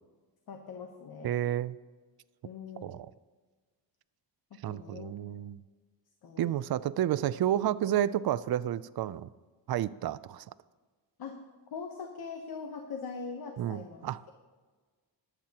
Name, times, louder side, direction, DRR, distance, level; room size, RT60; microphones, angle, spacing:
voice 1, 0.5-1.4 2.4-2.9 4.5-5.1 6.2-6.6 11.2-11.4 11.7-14.3, left 5 dB, 55° left, 4 dB, 1.1 m, -42 dB
voice 2, 1.2-1.8 2.8-3.1 4.6-5.6 6.4-9.3 9.7-10.4 13.6-14.3, right 11 dB, 60° right, 17 dB, 0.5 m, -31 dB
21.5 x 9.1 x 2.9 m, 1.4 s
wide cardioid pair, 130°, 44 cm